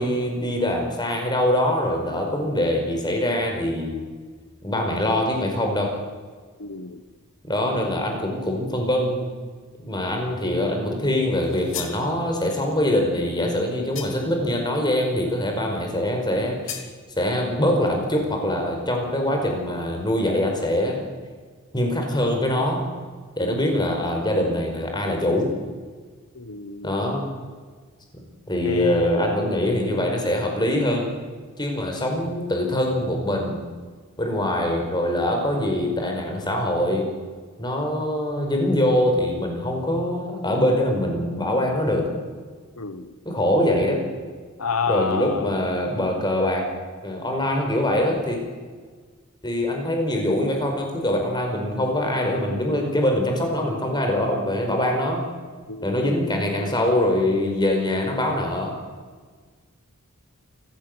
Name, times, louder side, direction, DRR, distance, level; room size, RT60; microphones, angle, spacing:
voice 1, 0.0-4.0 4.6-5.9 7.4-9.3 9.8-16.8 17.2-21.0 21.7-22.8 23.4-25.5 26.8-27.3 28.5-31.1 31.6-33.6 34.2-37.1 37.6-42.1 43.2-44.0 44.9-46.6 47.0-48.4 49.4-55.2 55.8-58.7, left 1 dB, 20° left, 2 dB, 5.0 m, -23 dB
voice 2, 6.6-7.0 23.4-23.6 26.3-27.1 28.6-29.3 42.8-43.1 44.6-45.5 55.7-56.1, left 4 dB, 85° left, 11 dB, 1.2 m, -29 dB
sound 1, 11.4-12.0 13.9-14.4 16.7-16.9, left 9 dB, 65° left, 2.8 m, -35 dB
28.0 x 16.0 x 8.0 m, 1.5 s
head